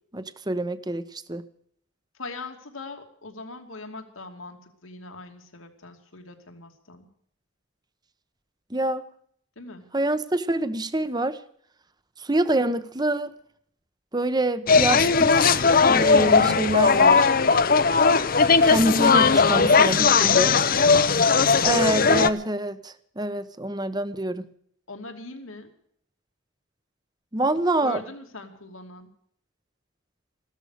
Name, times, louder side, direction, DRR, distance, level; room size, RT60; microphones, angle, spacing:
voice 1, 0.1-1.4 8.7-9.0 9.9-11.4 12.2-13.3 14.1-17.3 18.7-20.1 20.4-20.5 21.6-24.5 27.3-28.0, right 1 dB, 20° right, 13 dB, 0.9 m, -26 dB
voice 2, 2.2-7.1 9.6-9.8 20.1-22.3 24.9-25.7 27.8-29.1, left 3 dB, 85° left, 5 dB, 2.7 m, -40 dB
sound 1, 14.7-22.3, left 5 dB, 45° left, 0.7 m, -18 dB
15.5 x 13.0 x 6.6 m, 0.65 s
head